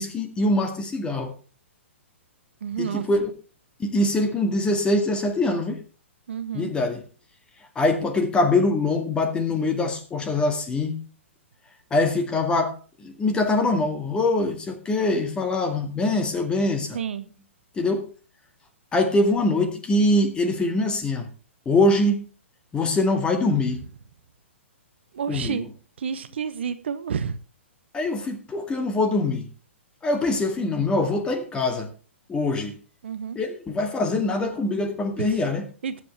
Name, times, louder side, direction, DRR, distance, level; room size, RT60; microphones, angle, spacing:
voice 1, 0.0-1.3 2.8-3.3 3.8-5.8 6.5-7.0 7.8-11.0 11.9-17.0 17.8-18.1 18.9-21.3 21.7-22.2 22.7-23.8 25.3-25.6 27.9-29.5 30.0-31.9 32.3-32.8 33.3-35.7, left 2 dB, 15° left, 2.0 m, -23 dB
voice 2, 2.6-3.1 6.3-6.7 16.9-17.3 25.1-25.7 26.0-27.4 33.0-33.4 35.2-35.4 35.8-36.0, right 7 dB, 60° right, 1.0 m, -30 dB
20.5 x 7.8 x 3.4 m
figure-of-eight pair, 115°, 7 cm